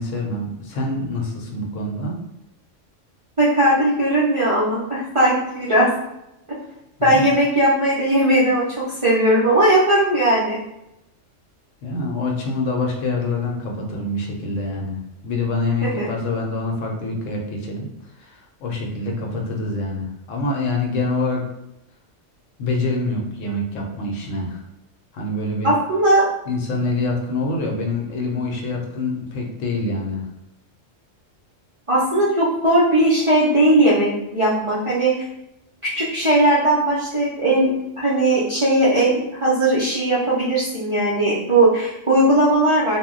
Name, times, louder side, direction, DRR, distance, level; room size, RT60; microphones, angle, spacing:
voice 1, 0.0-2.2 7.0-7.3 11.8-17.9 18.2-21.4 22.6-24.6 25.1-25.7 26.5-30.2, left 2 dB, 80° left, 0 dB, 1.0 m, -25 dB
voice 2, 3.4-5.9 7.0-10.6 15.8-16.1 25.6-26.3 31.9-35.3 35.8-43.0, right 1 dB, 50° right, -9 dB, 0.4 m, -18 dB
2.2 x 2.1 x 3.6 m, 0.87 s
omnidirectional pair, 1.3 m